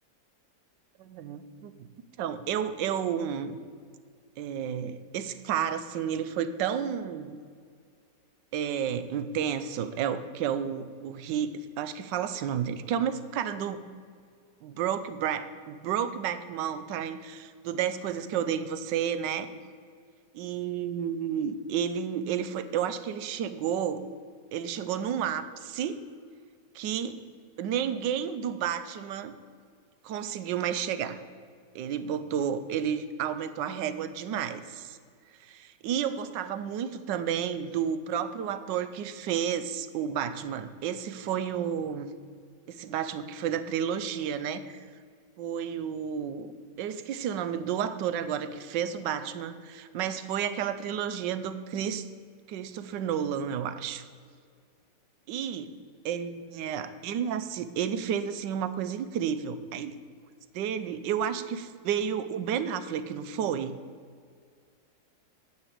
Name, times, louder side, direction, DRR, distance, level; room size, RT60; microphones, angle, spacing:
voice 1, 1.0-1.7 2.2-3.6 4.4-7.4 8.5-13.8 14.6-19.5 20.3-24.1 24.5-26.0 26.7-27.2 27.6-29.3 30.0-31.2 31.7-35.0 35.4-42.1 42.7-44.8 45.4-46.5 46.8-52.1 52.5-54.0 55.3-55.7 56.0-59.9 60.5-63.8, right 8 dB, 85° right, 12 dB, 1.3 m, -31 dB
9.4 x 6.0 x 8.3 m, 2.1 s
omnidirectional pair, 1.9 m